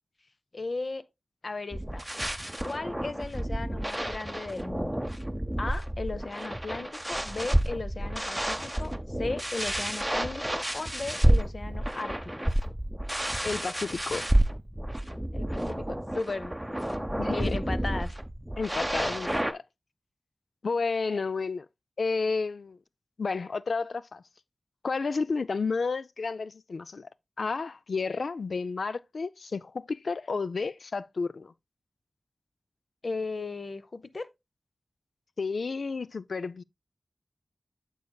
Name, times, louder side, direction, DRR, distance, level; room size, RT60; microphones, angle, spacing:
voice 1, 0.5-1.0 1.4-2.0 2.6-5.0 5.6-12.2 12.5-12.6 15.3-16.5 17.3-18.1 33.0-34.3, left 3 dB, 60° left, 0.7 m, -36 dB
sound 1, 1.7-19.5, right 1 dB, 10° right, 0.7 m, -30 dB
voice 2, 13.4-14.3 17.2-17.6 18.6-19.6 20.6-21.7 22.0-22.8 23.2-24.2 24.8-27.1 27.4-31.5 35.4-36.6, left 4 dB, 80° left, 0.3 m, -31 dB
9.4 x 6.5 x 2.3 m
wide cardioid pair, 70°, 0 cm